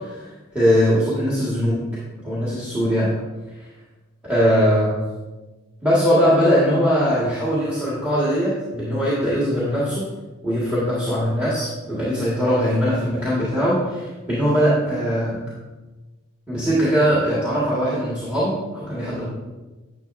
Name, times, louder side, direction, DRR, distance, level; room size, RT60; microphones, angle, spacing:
voice 1, 0.0-1.9 2.2-3.1 4.2-5.0 5.8-10.1 10.4-15.4 16.5-19.3, equal, 5° right, -9 dB, 1.9 m, -21 dB
10.5 x 7.0 x 2.7 m, 1.2 s
head